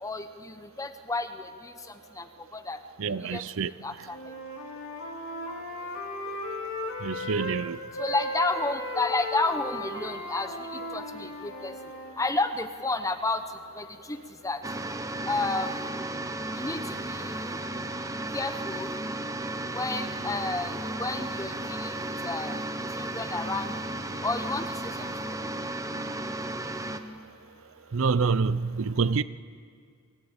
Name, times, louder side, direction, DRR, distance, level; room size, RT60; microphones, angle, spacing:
voice 1, 0.0-1.7 2.2-2.3 2.5-2.8 3.2-3.4 3.8-4.2 8.0-11.7 12.2-13.4 13.7-14.2 14.4-14.6 15.2-15.8 16.6-17.6 18.3-18.9 19.7-22.6 22.9-23.7 24.2-25.1, left 2 dB, 15° left, 0.9 m, -31 dB
voice 2, 3.0-3.7 7.0-7.8 27.9-29.2, right 5 dB, 65° right, 0.6 m, -26 dB
Wind instrument woodwind instrument, 4.1-7.6 7.9-12.2, left 1 dB, 85° left, 3.4 m, -36 dB
sound 1, 14.6-27.0, right 1 dB, 15° right, 0.9 m, -34 dB
24.0 x 15.0 x 8.9 m
head